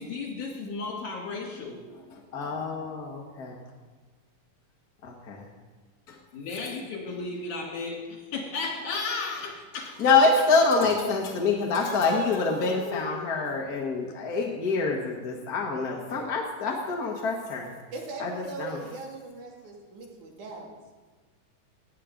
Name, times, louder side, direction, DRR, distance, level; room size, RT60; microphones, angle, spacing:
voice 1, 0.0-1.8 6.3-10.0 11.4-13.3, left 4 dB, 70° left, 0 dB, 4.1 m, -35 dB
voice 2, 2.1-3.6 5.0-5.4 6.1-6.2 10.0-17.7 18.2-18.8, left 4 dB, 50° left, 1 dB, 1.1 m, -26 dB
voice 3, 17.9-20.7, right 3 dB, 70° right, 0 dB, 3.5 m, -40 dB
18.0 x 9.7 x 5.1 m, 1.4 s
omnidirectional pair, 3.7 m